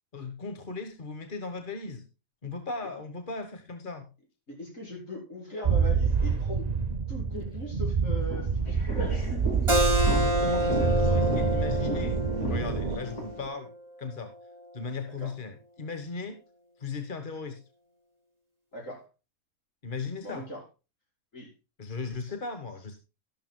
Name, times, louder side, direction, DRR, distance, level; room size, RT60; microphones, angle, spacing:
voice 1, 0.1-2.0 2.4-4.1 10.0-13.7 14.0-14.3 14.7-16.4 16.8-17.6 19.8-20.5 21.8-22.9, left 4 dB, 35° left, 7 dB, 1.5 m, -37 dB
voice 2, 4.5-6.7 7.1-9.2 15.2-15.3 18.7-19.1 20.2-20.6 21.3-21.5 22.2-22.3, equal, 65° left, -2 dB, 6.3 m, -40 dB
sound 1, 5.6-13.0, right 5 dB, 45° right, 0.6 m, -27 dB
sound 2, 8.2-13.5, equal, 80° left, 3.5 m, -37 dB
Keyboard (musical), 9.7-14.9, equal, 20° right, 2.4 m, -29 dB
13.0 x 12.5 x 2.2 m, 0.30 s
omnidirectional pair, 1.5 m